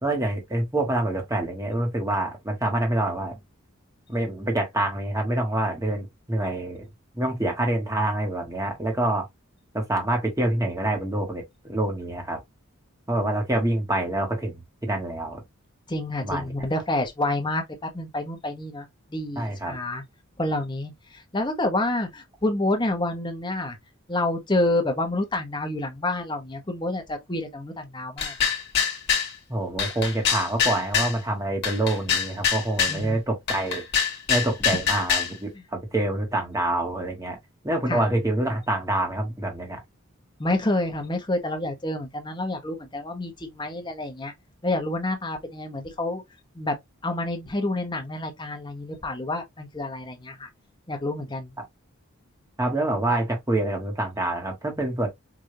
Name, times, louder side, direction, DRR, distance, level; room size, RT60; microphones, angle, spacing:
voice 1, 0.0-3.4 4.1-6.9 7.1-9.3 9.7-12.4 13.1-15.4 16.2-16.5 19.4-19.8 29.5-33.8 34.3-37.4 37.6-39.8 52.6-55.1, right 1 dB, 15° right, 1.3 m, -26 dB
voice 2, 15.9-20.0 20.4-23.8 24.1-28.5 32.9-33.2 37.9-38.0 40.4-44.3 44.6-46.2 46.5-46.8 47.0-50.5 50.9-51.5, left 2 dB, 20° left, 1.0 m, -28 dB
sound 1, 28.2-29.3 29.8-31.2 31.6-33.0 33.5-35.3, left 7 dB, 55° left, 1.4 m, -24 dB
4.9 x 2.6 x 2.7 m
head